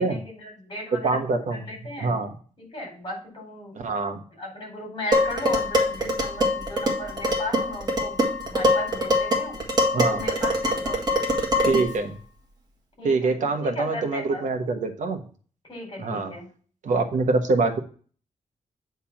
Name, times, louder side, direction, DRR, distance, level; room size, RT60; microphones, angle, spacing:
voice 1, 0.0-1.2 1.5-2.2 2.6-3.8 4.4-8.2 8.5-9.6 10.1-11.0 13.0-14.4 15.6-16.5, left 1 dB, 35° left, 0 dB, 4.1 m, -36 dB
voice 2, 1.0-1.6 2.0-2.3 3.7-4.2 9.9-10.2 11.7-12.2 13.0-15.2 16.0-16.3 16.8-17.8, right 3 dB, 75° right, 5 dB, 1.2 m, -24 dB
Dishes pots and pans, 5.1-12.0, left 1 dB, 30° right, 1.6 m, -24 dB
8.5 x 3.6 x 5.8 m, 0.42 s
wide cardioid pair, 175°, 13 cm